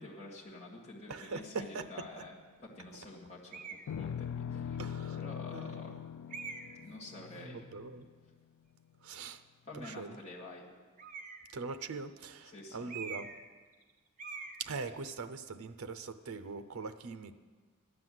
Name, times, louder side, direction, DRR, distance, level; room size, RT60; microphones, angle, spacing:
voice 1, 0.0-4.8 5.1-6.0 6.7-7.6 9.6-10.7 12.4-12.9, left 2 dB, 30° left, -5 dB, 1.9 m, -49 dB
voice 2, 1.1-1.9 4.8-5.2 5.5-6.0 7.4-8.1 9.0-9.4 9.7-10.2 11.5-13.3 14.6-17.3, right 4 dB, 80° right, 11 dB, 0.6 m, -42 dB
sound 1, 3.5-3.9 4.7-4.8 6.3-6.8 11.0-11.6 12.9-13.5 13.7-13.9 14.2-14.6, right 5 dB, 35° right, 0.9 m, -44 dB
sound 2, 3.9-8.3, left 8 dB, 85° left, 0.3 m, -41 dB
13.0 x 9.6 x 7.6 m, 1.5 s
head